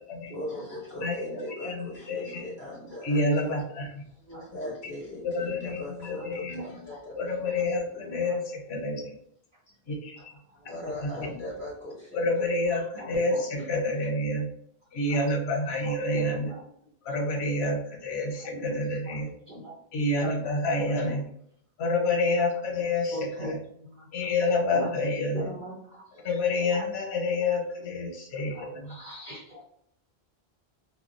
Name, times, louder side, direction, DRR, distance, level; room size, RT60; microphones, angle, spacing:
voice 1, 0.3-3.6 4.4-8.1 9.7-9.8 10.7-12.5, left 1 dB, 50° left, -8 dB, 1.5 m, -39 dB
voice 2, 1.0-2.5 3.0-4.0 5.2-6.6 7.1-9.1 9.9-10.3 11.0-11.1 12.1-14.5 14.9-16.5 17.0-19.3 19.9-21.3 21.8-23.6 24.1-25.4 26.2-29.0, left 2 dB, 90° left, 1 dB, 0.9 m, -28 dB
voice 3, 4.3-4.7 6.9-7.0 10.2-10.3 10.6-10.7 11.2-11.3 13.0-13.6 15.1-15.4 15.8-16.6 18.4-18.7 19.1-19.2 19.5-19.7 20.2-20.3 21.0-21.2 23.1-23.5 23.8-24.1 24.7-24.9 25.3-26.4 26.7-26.8 28.5-29.6, equal, 55° right, -6 dB, 0.8 m, -40 dB
3.0 x 2.0 x 2.4 m, 0.69 s
omnidirectional pair, 1.0 m